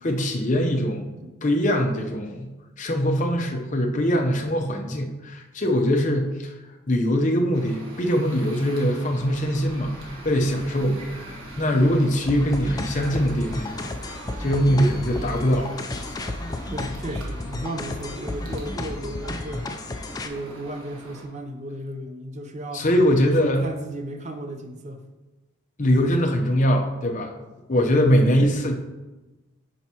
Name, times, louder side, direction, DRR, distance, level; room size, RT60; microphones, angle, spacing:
voice 1, 0.0-1.1 1.4-2.5 2.8-6.5 6.9-15.7 22.7-23.6 25.8-27.3 27.7-28.7, equal, 35° left, 3 dB, 0.7 m, -22 dB
sound 1, 7.5-21.2, right 1 dB, 90° right, 1.5 m, -42 dB
sound 2, 9.1-18.2, left 1 dB, 15° right, 0.9 m, -45 dB
sound 3, 12.3-20.3, left 2 dB, 20° left, 0.3 m, -32 dB
voice 2, 16.7-19.7 20.2-22.9 23.4-25.0 28.2-28.4 28.6-28.7, right 1 dB, 35° right, 5 dB, 0.6 m, -35 dB
10.0 x 4.5 x 2.9 m, 1.1 s
head